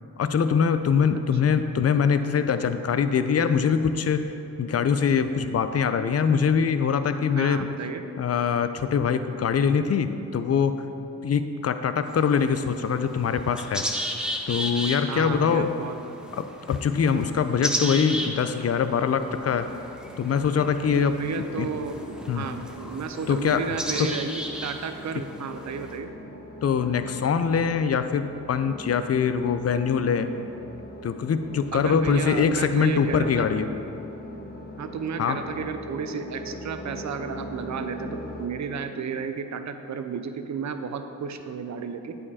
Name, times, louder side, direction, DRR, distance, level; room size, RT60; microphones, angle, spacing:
voice 1, 0.2-4.2 4.6-7.7 8.2-10.8 11.2-13.9 14.5-15.7 16.4-19.7 20.2-21.2 21.6-21.7 22.3-22.4 23.3-23.6 24.0-24.1 26.6-30.3 31.0-33.7 35.2-35.4, left 6 dB, 45° left, 10 dB, 0.5 m, -23 dB
voice 2, 7.4-8.0 15.1-16.0 20.9-26.1 31.7-33.5 34.8-42.2, right 6 dB, 50° right, 8 dB, 0.6 m, -32 dB
sound 1, 12.0-26.0, equal, ahead, 1.2 m, -35 dB
sound 2, 19.1-38.5, left 1 dB, 25° left, 0.9 m, -41 dB
8.5 x 5.2 x 4.1 m, 2.9 s
supercardioid pair, 45°, 35 cm